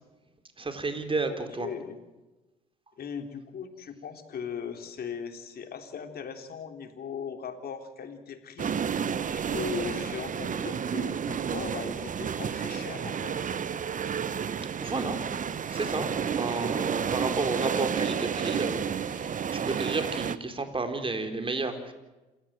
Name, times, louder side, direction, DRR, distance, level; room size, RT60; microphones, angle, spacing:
voice 1, 0.6-1.7 14.8-15.2 15.7-19.3 19.6-21.9, right 3 dB, 30° right, 7 dB, 4.3 m, -32 dB
voice 2, 1.3-2.0 3.0-8.8 9.3-13.4, left 7 dB, 55° left, 6 dB, 3.7 m, -38 dB
sound 1, 8.6-20.4, right 7 dB, 45° right, 1.2 m, -31 dB
27.5 x 16.5 x 7.8 m, 1.1 s
hypercardioid pair, 55°, 19 cm